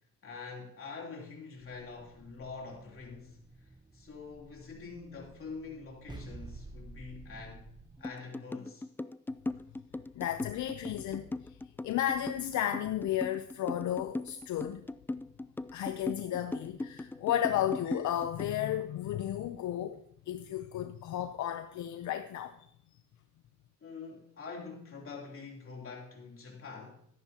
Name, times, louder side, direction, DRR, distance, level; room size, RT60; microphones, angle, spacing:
voice 1, 0.2-7.7 8.0-8.9 9.5-9.6 23.8-27.1, left 4 dB, 45° left, 3.2 m, -45 dB
sound 1, 1.6-8.1, right 3 dB, 15° right, 0.8 m, -51 dB
sound 2, 8.0-18.6, left 2 dB, 5° left, 0.3 m, -38 dB
voice 2, 10.1-11.6 11.8-14.9 15.7-22.7, left 11 dB, 70° left, 0.7 m, -33 dB
13.5 x 11.0 x 2.9 m
cardioid pair, 90°, 30 cm